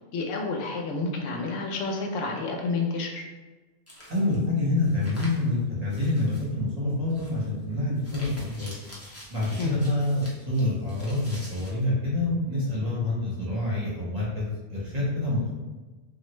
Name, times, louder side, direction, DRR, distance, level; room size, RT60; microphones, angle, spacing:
voice 1, 0.1-3.2 9.6-9.8, left 3 dB, 85° left, 1 dB, 0.9 m, -30 dB
sound 1, 3.9-4.4 4.8-5.5 5.9-6.5 7.0-7.5 8.0-11.7, equal, 15° left, 0.5 m, -46 dB
voice 2, 4.1-8.7 9.3-15.5, left 2 dB, 35° right, -7 dB, 1.0 m, -27 dB
3.2 x 2.4 x 3.0 m, 1.2 s
omnidirectional pair, 1.2 m